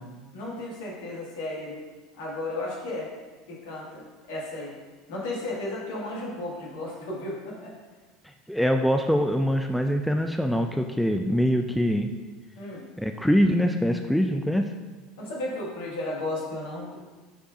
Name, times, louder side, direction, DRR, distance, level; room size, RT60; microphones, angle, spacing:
voice 1, 0.3-1.8 2.2-3.1 3.5-4.0 4.3-4.7 5.1-7.7 12.6-12.9 15.2-17.0, left 2 dB, 65° left, -4 dB, 1.9 m, -34 dB
voice 2, 8.5-12.1 13.0-14.6, equal, ahead, 5 dB, 0.4 m, -23 dB
8.7 x 4.6 x 2.5 m, 1.3 s
figure-of-eight pair, 70°, 0 cm